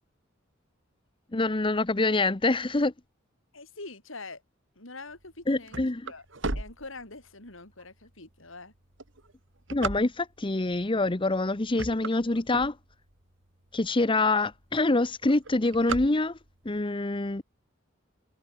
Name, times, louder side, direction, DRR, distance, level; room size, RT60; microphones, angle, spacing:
voice 1, 1.3-2.9 5.5-6.1 9.7-12.8 13.7-16.4 16.6-17.4, left 2 dB, 25° left, 0.8 m, -26 dB
voice 2, 3.5-4.4 4.8-6.2 6.5-8.7, left 3 dB, 75° left, 6.2 m, -44 dB
sound 1, 5.2-7.5 8.1-8.2 8.8-10.5 11.2-11.4 11.7-13.2 13.7-13.8 14.0-14.1 14.4-14.8 15.1-16.7, right 3 dB, 65° right, 2.7 m, -35 dB
head